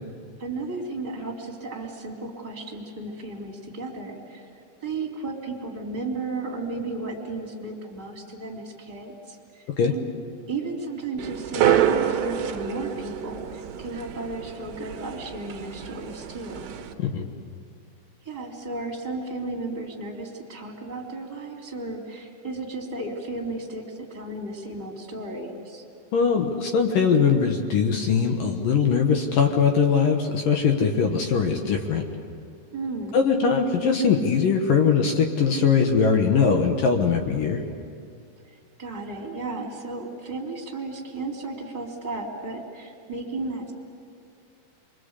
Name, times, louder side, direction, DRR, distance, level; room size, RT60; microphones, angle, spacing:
voice 1, 0.4-10.1 10.5-16.7 18.2-25.8 32.7-33.2 38.5-43.7, right 2 dB, 10° right, -2 dB, 3.0 m, -34 dB
sound 1, 11.2-16.9, right 10 dB, 70° right, 3.3 m, -27 dB
voice 2, 26.1-32.0 33.1-37.6, left 6 dB, 65° left, 3 dB, 2.4 m, -21 dB
27.0 x 24.0 x 8.3 m, 2.4 s
omnidirectional pair, 5.3 m